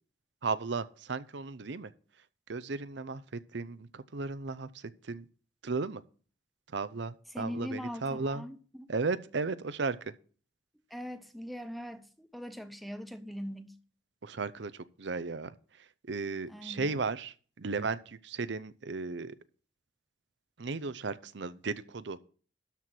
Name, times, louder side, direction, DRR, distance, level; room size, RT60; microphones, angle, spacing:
voice 1, 0.4-1.9 2.5-5.2 5.6-6.0 6.7-8.4 8.9-10.1 14.2-19.4 20.6-22.2, right 4 dB, 65° right, 0.6 m, -35 dB
voice 2, 7.3-8.9 10.9-13.8 16.5-16.9, equal, ahead, 0.7 m, -41 dB
12.5 x 4.5 x 7.6 m
head